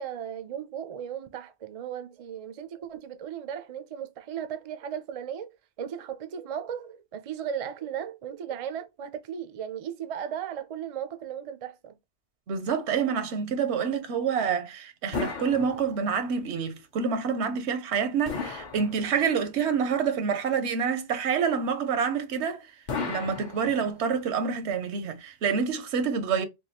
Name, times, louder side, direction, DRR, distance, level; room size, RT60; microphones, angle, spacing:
voice 1, 0.0-5.5 5.8-12.0, right 8 dB, 50° right, 0.4 m, -36 dB
voice 2, 12.5-22.7 23.0-26.4, right 6 dB, 85° right, 1.0 m, -27 dB
sound 1, 15.1-16.3 18.2-19.5 22.9-24.2, left 4 dB, 50° left, 0.7 m, -35 dB
3.5 x 2.3 x 2.8 m
omnidirectional pair, 1.1 m